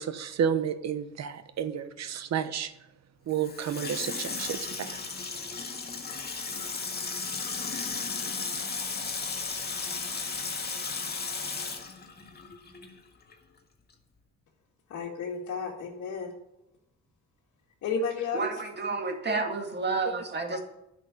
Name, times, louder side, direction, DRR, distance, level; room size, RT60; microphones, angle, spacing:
voice 1, 0.0-2.7 3.3-5.0, right 8 dB, 60° right, 11 dB, 1.1 m, -31 dB
Water tap faucet / Sink (filling or washing), 3.3-13.0 13.3-13.4, left 4 dB, 35° left, 1.8 m, -35 dB
voice 2, 14.9-16.3 17.8-18.5, left 4 dB, 65° left, -5 dB, 2.2 m, -32 dB
voice 3, 18.3-20.6, right 3 dB, 35° right, 4 dB, 2.2 m, -30 dB
10.0 x 6.3 x 8.4 m, 0.88 s
cardioid pair, 90°, 30 cm